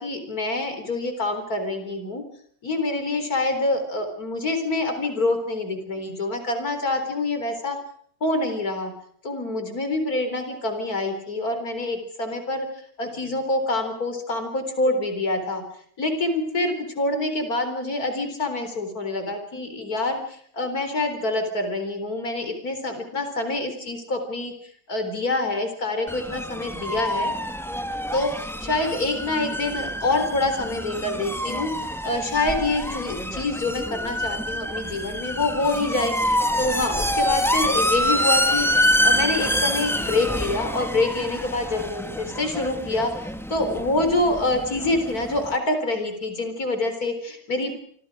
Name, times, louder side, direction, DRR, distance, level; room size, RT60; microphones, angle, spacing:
voice 1, 0.0-2.2 2.6-7.8 8.2-8.9 9.2-15.6 16.0-24.5 24.9-27.3 28.1-47.8, left 2 dB, 80° left, 7 dB, 4.5 m, -26 dB
sound 1, 26.1-45.6, equal, ahead, 1.4 m, -27 dB
28.0 x 25.5 x 5.0 m, 0.62 s
omnidirectional pair, 1.6 m